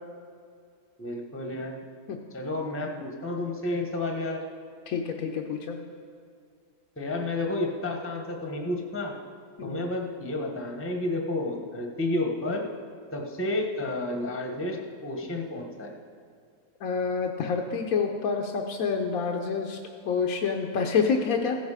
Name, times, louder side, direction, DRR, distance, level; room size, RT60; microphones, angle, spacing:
voice 1, 1.0-1.7 2.3-4.4 7.0-9.1 9.6-12.7 13.1-15.9, left 2 dB, 10° left, 2 dB, 0.9 m, -31 dB
voice 2, 4.9-5.8 9.6-9.8 16.8-19.8 20.1-21.6, left 5 dB, 70° left, 2 dB, 1.1 m, -27 dB
15.5 x 7.2 x 4.9 m, 2.2 s
omnidirectional pair, 1.6 m